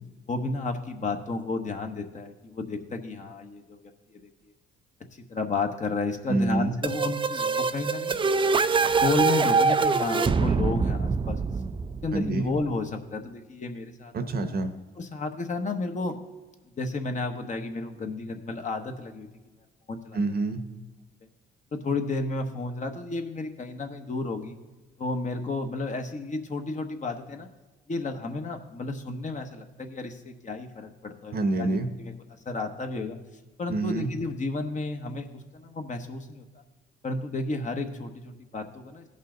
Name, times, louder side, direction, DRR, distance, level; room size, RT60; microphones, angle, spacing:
voice 1, 0.3-4.3 5.1-8.2 8.9-11.4 12.0-14.1 15.0-16.2 16.8-19.3 19.9-20.2 21.7-24.6 25.0-27.5 27.9-33.2 33.6-36.4 37.0-39.0, left 3 dB, 40° left, 5 dB, 1.1 m, -32 dB
voice 2, 6.3-6.8 12.1-12.5 14.1-14.7 20.1-20.6 31.3-31.9 33.7-34.1, right 2 dB, 50° right, 9 dB, 0.9 m, -27 dB
sound 1, 6.8-12.5, right 4 dB, 25° right, 0.4 m, -24 dB
16.5 x 5.5 x 3.8 m, 1.2 s
cardioid pair, 90°, 20 cm